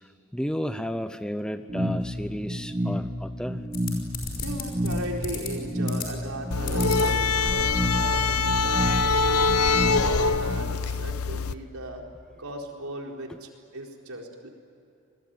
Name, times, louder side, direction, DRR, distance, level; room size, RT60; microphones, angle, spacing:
voice 1, 0.3-3.6, equal, 5° left, 10 dB, 0.6 m, -32 dB
sound 1, 1.7-10.7, equal, 20° right, 1.6 m, -31 dB
sound 2, 3.7-5.5 5.9-6.3 6.7-8.0 8.3-8.4 8.6-9.3, left 3 dB, 40° left, 5.6 m, -35 dB
voice 2, 4.4-9.4 9.8-12.0 12.4-14.5, right 1 dB, 75° right, 1 dB, 4.3 m, -37 dB
sound 3, 6.5-11.5, left 4 dB, 80° left, 0.9 m, -24 dB
27.5 x 21.0 x 9.2 m, 2.7 s
head